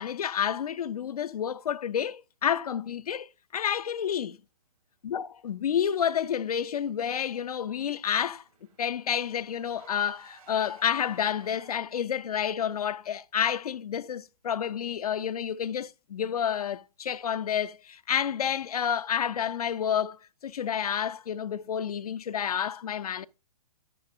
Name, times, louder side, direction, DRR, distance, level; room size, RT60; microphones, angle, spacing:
voice 1, 0.0-3.3 3.5-4.4 5.0-8.4 8.8-23.3, left 8 dB, 65° left, 0.5 m, -29 dB
Car / Engine, 7.1-12.1, right 5 dB, 60° right, 4.4 m, -58 dB
10.0 x 9.9 x 2.5 m
figure-of-eight pair, 125°, 20 cm